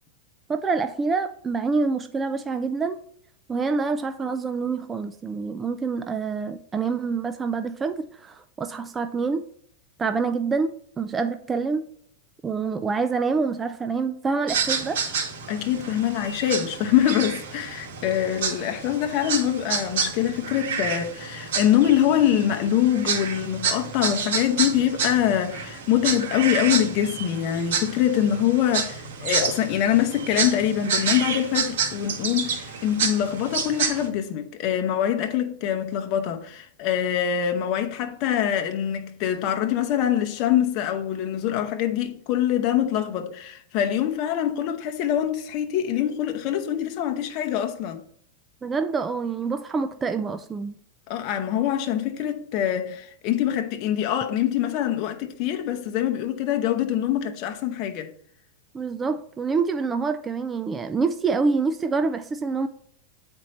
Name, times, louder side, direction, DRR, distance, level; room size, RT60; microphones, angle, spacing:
voice 1, 0.5-3.0 3.5-9.5 10.0-11.9 12.4-15.0 48.6-50.7 58.7-62.7, right 4 dB, 15° right, 0.4 m, -26 dB
sound 1, 14.5-34.1, right 6 dB, 80° right, 2.0 m, -29 dB
voice 2, 15.5-48.0 51.1-58.1, left 10 dB, 40° left, 0.8 m, -24 dB
8.9 x 4.4 x 4.1 m
supercardioid pair, 155°, 0 cm